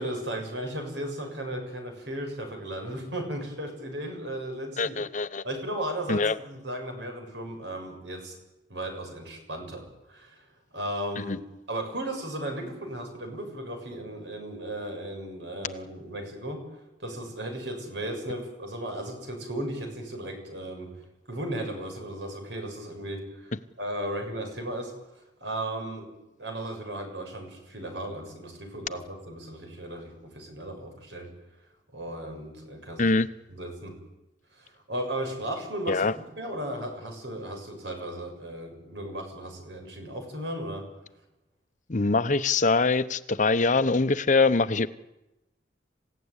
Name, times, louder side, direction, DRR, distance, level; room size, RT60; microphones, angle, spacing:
voice 1, 0.0-5.0 5.4-8.4 8.7-10.4 10.7-11.4 11.7-16.6 17.0-20.9 21.3-24.9 25.4-26.1 26.4-31.3 31.9-33.1 33.5-33.9 34.5-40.9, right 1 dB, 80° right, 4 dB, 6.9 m, -35 dB
voice 2, 4.8-5.4 6.1-6.3 11.3-11.4 33.0-33.3 35.9-36.1 41.9-44.9, left 3 dB, 45° left, 13 dB, 0.8 m, -23 dB
28.5 x 16.0 x 9.8 m, 0.97 s
head